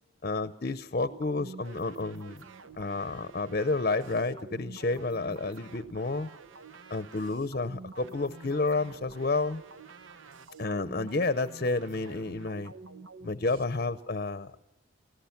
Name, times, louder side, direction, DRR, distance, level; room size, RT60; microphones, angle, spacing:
voice 1, 0.2-2.4 2.8-6.3 6.9-9.6 10.6-12.7 13.2-14.5, left 3 dB, 45° left, 13 dB, 0.6 m, -30 dB
sound 1, 1.0-13.6, right 4 dB, 85° right, 0.9 m, -48 dB
29.0 x 17.5 x 5.8 m, 0.93 s
head